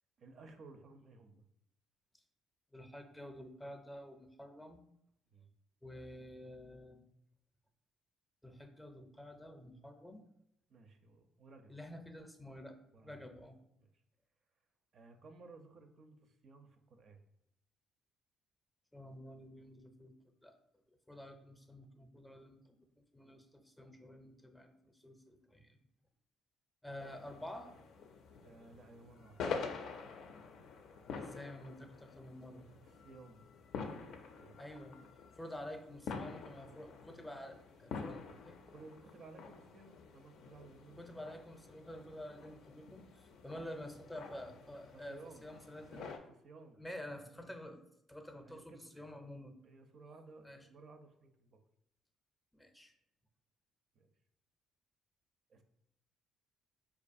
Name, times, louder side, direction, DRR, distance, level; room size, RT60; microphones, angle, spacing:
voice 1, 0.2-1.4 5.3-5.5 10.7-12.0 12.9-13.2 13.8-14.0 14.9-17.2 28.4-29.4 32.8-33.5 33.9-34.6 38.7-41.3 44.9-45.5 45.9-46.8 47.1-47.7 48.3-48.9 49.2-49.4 49.6-51.6 53.9-54.1 55.5-55.6, right 3 dB, 55° right, 6 dB, 0.4 m, -57 dB
voice 2, 2.7-4.8 5.8-7.1 8.4-10.2 11.7-13.6 18.9-20.1 20.4-20.5 21.1-22.8 23.1-24.7 25.0-25.8 26.8-27.7 31.2-32.6 34.6-35.0 35.4-38.6 41.0-46.0 46.8-47.8 48.1-49.6 50.4-50.6 52.5-52.9, left 1 dB, 5° left, 5 dB, 0.5 m, -49 dB
sound 1, 27.0-46.2, left 5 dB, 70° left, 0.4 m, -47 dB
4.5 x 2.3 x 2.5 m, 0.78 s
supercardioid pair, 80°, 0 cm